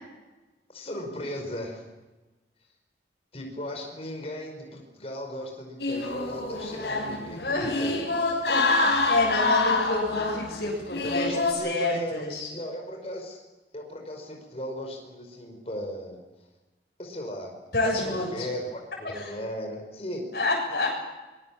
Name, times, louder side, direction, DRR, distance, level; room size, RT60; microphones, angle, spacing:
voice 1, 0.7-1.9 3.3-7.4 7.7-8.4 11.0-13.4 13.7-16.2 17.0-17.5 17.9-20.3, equal, 35° left, 2 dB, 5.2 m, -37 dB
sound 1, 5.8-11.5, left 3 dB, 75° left, 5.2 m, -26 dB
voice 2, 7.4-7.9 8.5-12.5 17.7-18.5 19.1-19.3 20.3-20.9, left 2 dB, 60° left, -3 dB, 7.5 m, -28 dB
25.0 x 22.0 x 7.4 m, 1.1 s
head